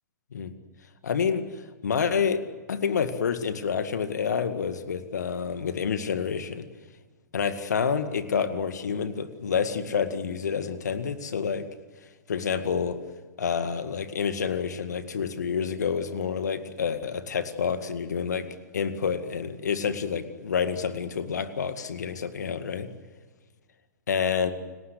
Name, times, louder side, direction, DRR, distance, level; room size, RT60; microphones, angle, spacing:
voice 1, 1.0-1.4 1.8-2.4 2.7-6.7 7.3-11.7 12.3-13.0 13.4-18.5 18.7-22.9 24.1-24.5, left 6 dB, 65° left, 11 dB, 2.0 m, -28 dB
29.5 x 19.5 x 8.2 m, 1.4 s
figure-of-eight pair, 110°, 10 cm